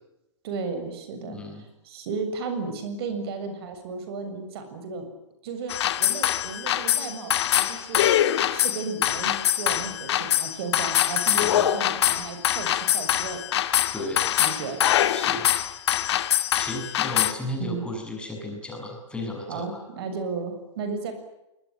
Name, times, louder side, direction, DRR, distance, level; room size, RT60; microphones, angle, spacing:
voice 1, 0.4-5.1 5.4-13.4 14.0-14.1 14.4-14.9 17.6-17.9 19.5-21.1, right 4 dB, 55° right, 8 dB, 7.2 m, -34 dB
voice 2, 1.2-1.6 11.4-11.7 13.9-14.3 15.1-15.5 16.6-19.8, left 1 dB, 5° left, 1 dB, 7.3 m, -34 dB
sound 1, 5.7-17.3, left 12 dB, 60° left, 2.4 m, -23 dB
26.0 x 22.0 x 9.2 m, 0.91 s
hypercardioid pair, 140°, 16 cm